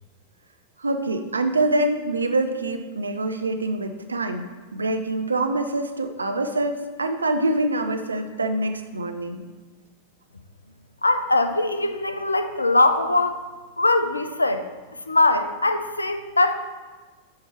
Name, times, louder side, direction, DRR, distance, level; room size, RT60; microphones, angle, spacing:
voice 1, 0.8-9.4, right 2 dB, 75° right, 6 dB, 0.6 m, -25 dB
voice 2, 11.0-13.4 13.8-14.6 15.1-16.5, left 2 dB, 80° left, 9 dB, 0.5 m, -21 dB
9.3 x 3.1 x 5.8 m, 1.3 s
figure-of-eight pair, 90°, 0 cm